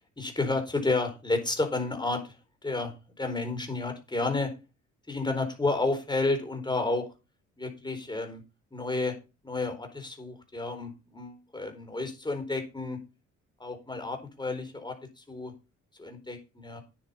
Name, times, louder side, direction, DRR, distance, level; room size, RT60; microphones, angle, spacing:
voice 1, 0.2-2.3 2.6-4.5 5.1-7.1 7.6-8.4 8.7-9.2 9.4-13.0 13.6-15.5 16.0-16.8, left 3 dB, 15° left, 5 dB, 4.3 m, -31 dB
9.6 x 7.6 x 5.6 m, 0.29 s
cardioid pair, 90°, 30 cm